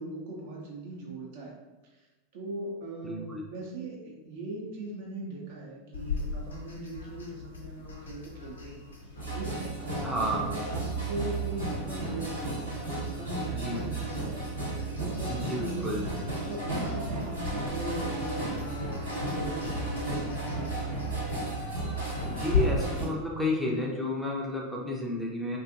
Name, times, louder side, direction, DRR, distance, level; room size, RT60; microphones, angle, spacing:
voice 1, 0.0-1.5 2.3-8.8 9.3-15.9 16.5-20.7, right 2 dB, 50° right, -2 dB, 0.5 m, -40 dB
voice 2, 3.0-3.4 10.0-10.4 13.5-13.8 15.3-16.1 22.3-25.6, left 1 dB, ahead, -3 dB, 0.4 m, -31 dB
sound 1, 5.9-22.6, left 6 dB, 70° left, 0.5 m, -40 dB
sound 2, 9.1-23.1, right 2 dB, 80° right, 0.9 m, -34 dB
2.4 x 2.4 x 2.5 m, 1.1 s
figure-of-eight pair, 85°, 0 cm